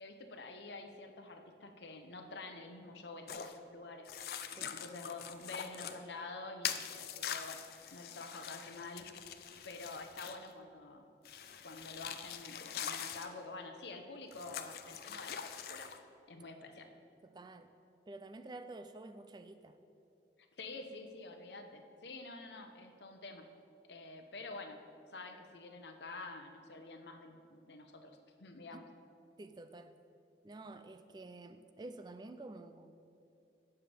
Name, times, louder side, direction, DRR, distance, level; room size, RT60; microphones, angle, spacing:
voice 1, 0.0-4.1 4.7-7.6 7.9-9.1 9.6-11.1 11.6-15.9 16.3-16.9 20.6-23.4 23.9-24.8 25.1-28.8, left 3 dB, 75° left, 5 dB, 0.9 m, -48 dB
sound 1, 3.3-3.6 4.0-6.0 6.6-10.5 11.2-13.3 14.3-16.0, left 8 dB, 55° left, 0.5 m, -43 dB
voice 2, 17.2-17.7 18.1-19.8 28.7-28.8 29.4-30.0 30.4-33.0, right 2 dB, 25° right, 10 dB, 0.3 m, -50 dB
17.0 x 6.9 x 3.4 m, 2.6 s
head